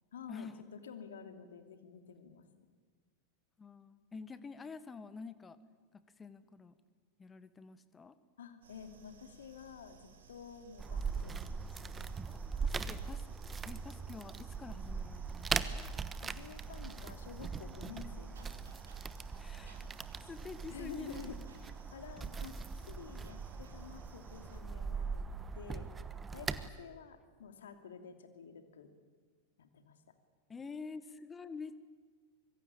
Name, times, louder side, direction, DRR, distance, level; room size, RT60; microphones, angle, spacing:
voice 1, 0.1-2.5 8.4-10.0 10.3-12.2 16.1-18.7 20.7-21.4 21.6-22.6 22.9-25.3 25.5-25.9 26.3-28.9 29.6-30.0, left 7 dB, 65° left, 7 dB, 2.7 m, -50 dB
voice 2, 3.6-5.6 5.9-6.7 7.2-8.2 12.6-13.3 13.6-15.8 19.4-19.9 20.2-21.2 30.5-31.9, left 4 dB, 15° left, 14 dB, 1.5 m, -48 dB
sound 1, 8.6-24.6, right 7 dB, 65° right, 3.9 m, -60 dB
sound 2, 10.8-26.7, right 5 dB, 15° right, 1.1 m, -40 dB
25.0 x 23.0 x 8.8 m, 1.5 s
figure-of-eight pair, 90°, 0 cm